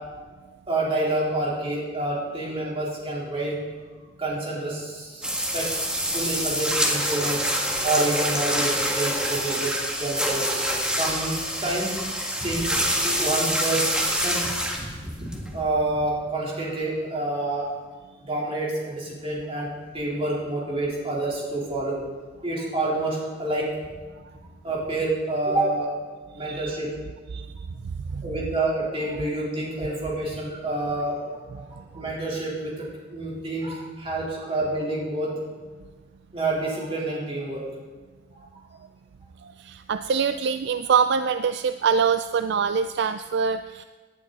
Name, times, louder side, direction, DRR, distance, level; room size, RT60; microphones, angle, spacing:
voice 1, 0.7-3.6 4.2-5.2 5.5-5.7 6.0-7.5 7.8-9.7 10.0-10.4 10.9-11.9 12.4-14.4 14.8-17.7 18.3-19.7 19.9-22.0 22.4-23.7 24.6-25.9 26.4-26.9 28.2-32.9 33.1-35.3 36.3-37.6, right 2 dB, 30° right, -5 dB, 3.9 m, -28 dB
sound 1, 5.2-15.6, equal, 5° right, 1.7 m, -26 dB
voice 2, 26.4-26.7 27.3-27.5 28.1-28.2 39.4-43.8, right 6 dB, 60° right, 10 dB, 0.4 m, -24 dB
18.5 x 11.0 x 4.1 m, 1.3 s
head